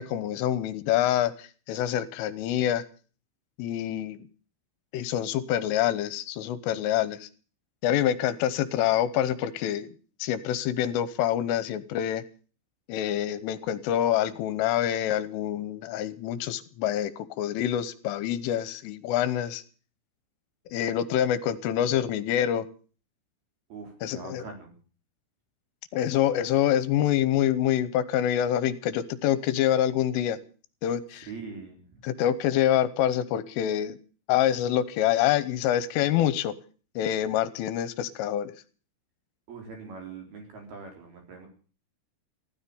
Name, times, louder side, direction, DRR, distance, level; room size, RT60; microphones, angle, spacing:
voice 1, 0.0-2.8 3.6-4.2 4.9-7.3 7.8-9.9 10.2-12.2 12.9-19.6 20.7-22.7 24.0-24.4 25.9-30.4 30.8-31.3 32.0-34.0 34.3-36.5 37.0-38.5, left 11 dB, 80° left, 15 dB, 3.4 m, -26 dB
voice 2, 23.7-24.7 31.1-32.0 39.5-41.5, right 4 dB, 50° right, 3 dB, 5.9 m, -42 dB
16.0 x 13.0 x 6.9 m, 0.40 s
omnidirectional pair, 5.8 m